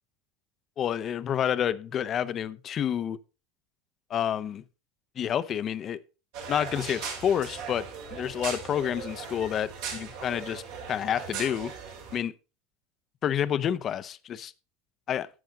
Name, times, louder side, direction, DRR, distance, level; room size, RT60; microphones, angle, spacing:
voice 1, 0.8-3.2 4.1-4.6 5.2-6.0 6.5-7.9 8.1-10.6 10.9-11.7 12.1-12.3 13.2-14.5 15.1-15.3, left 9 dB, 40° left, 0.7 m, -29 dB
sound 1, 6.3-12.2, right 5 dB, 70° right, 3.6 m, -38 dB
11.0 x 7.7 x 3.7 m
hypercardioid pair, 90°, 0 cm